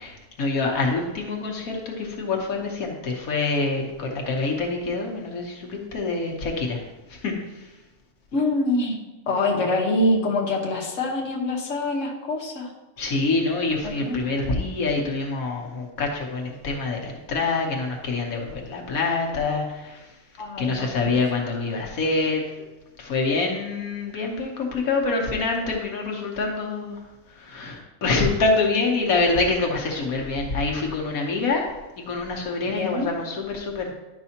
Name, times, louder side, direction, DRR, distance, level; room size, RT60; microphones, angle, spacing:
voice 1, 0.0-6.8 7.1-7.3 13.0-20.0 20.6-22.5 23.0-27.0 27.4-31.6 32.0-33.9, left 3 dB, 85° left, 0 dB, 1.5 m, -26 dB
voice 2, 8.3-9.0 9.3-12.7 13.8-14.2 20.4-20.9 32.7-33.1, left 2 dB, 65° left, -1 dB, 1.5 m, -25 dB
10.5 x 5.4 x 2.9 m, 1.1 s
omnidirectional pair, 1.4 m